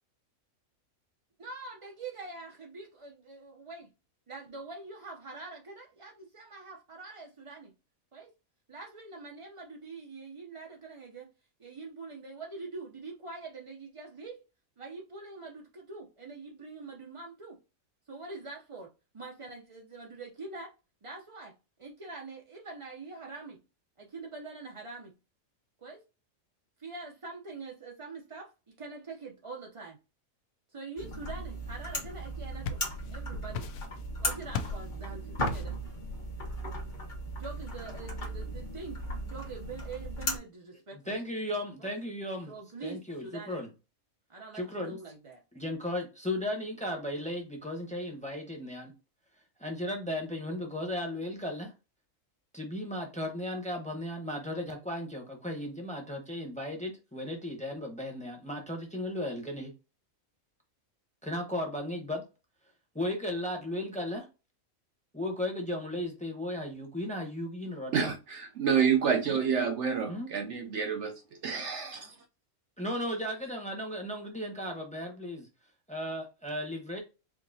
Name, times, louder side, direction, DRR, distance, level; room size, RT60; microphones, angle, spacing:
voice 1, 1.4-3.9 4.3-7.7 8.1-8.3 8.7-11.3 11.6-14.4 14.8-17.6 18.1-20.7 21.0-21.5 21.8-23.6 24.0-25.1 25.8-26.0 26.8-30.0 30.7-32.8 33.1-33.7 34.2-35.8 37.3-41.2 41.8-42.0 42.5-43.6 44.3-45.4, right 3 dB, 35° right, 0.5 m, -44 dB
sound 1, 31.0-40.4, equal, 40° left, 1.1 m, -37 dB
sound 2, 32.2-33.2 33.5-34.1 34.5-34.9 35.5-35.8, left 6 dB, 75° left, 1.0 m, -37 dB
voice 2, 40.9-42.5 42.8-43.7 44.5-45.0 45.5-48.9 49.6-51.7 52.5-59.7 61.2-62.2 62.9-64.3 65.1-68.0 70.1-70.3 72.8-75.5 75.9-77.0, left 1 dB, 5° left, 0.8 m, -35 dB
voice 3, 67.9-72.1, right 7 dB, 65° right, 0.8 m, -29 dB
4.7 x 2.8 x 2.7 m
omnidirectional pair, 1.5 m